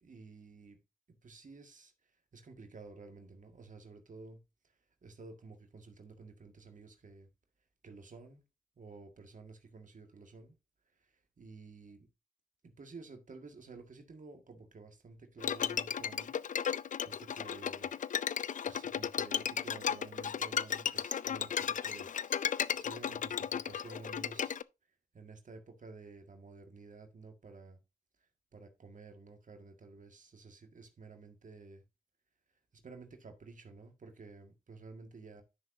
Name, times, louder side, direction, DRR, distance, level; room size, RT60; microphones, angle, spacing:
voice 1, 0.0-0.8 1.2-1.9 2.3-4.4 5.0-7.3 7.8-8.4 8.8-10.5 10.9-12.1 12.6-16.3 16.7-17.9 18.6-22.1 22.4-24.6 25.1-27.8 28.5-31.8 32.7-35.4, right 3 dB, 55° right, 1.8 m, -52 dB
Bowed string instrument, 15.4-24.6, left 8 dB, 55° left, 0.4 m, -35 dB
10.5 x 6.2 x 2.7 m
supercardioid pair, 40°, 16 cm